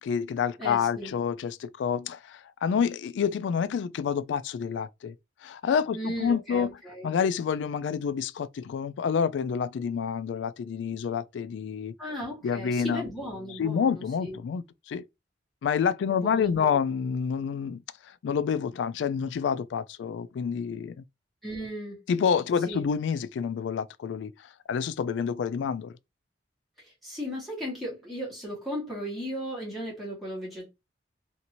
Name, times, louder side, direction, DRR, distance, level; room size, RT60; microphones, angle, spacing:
voice 1, 0.0-5.1 5.4-6.7 7.0-11.9 12.4-13.0 13.6-15.0 15.6-17.8 18.2-21.0 22.1-24.3 24.7-25.9, left 7 dB, 70° left, 0.3 m, -28 dB
voice 2, 0.6-1.1 5.9-7.1 12.0-14.4 16.1-16.8 21.4-22.0 22.7-22.8 26.8-30.7, equal, ahead, 1.3 m, -36 dB
2.7 x 2.5 x 2.8 m
head